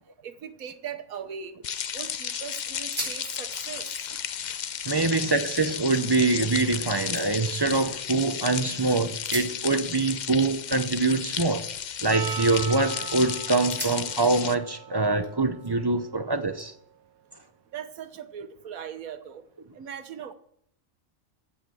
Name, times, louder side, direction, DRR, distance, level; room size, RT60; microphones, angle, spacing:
voice 1, 0.2-1.6 1.9-3.9 4.9-5.3 17.7-19.4 19.7-20.3, right 8 dB, 80° right, 1.4 m, -39 dB
sound 1, 1.1-1.9 2.3-2.4 2.7-3.2 3.5-5.5 5.9-6.4 6.9-8.4 9.1-11.9 12.2-12.6 13.1-13.2 13.7-15.9 16.6-17.7, equal, 5° right, 4.2 m, -42 dB
sound 2, 1.6-14.5, left 8 dB, 65° left, 0.4 m, -34 dB
voice 2, 4.9-11.6 12.0-16.7, right 3 dB, 25° right, 0.5 m, -24 dB
Percussion, 12.1-16.7, right 8 dB, 60° right, 0.8 m, -40 dB
15.5 x 5.8 x 7.7 m
omnidirectional pair, 1.5 m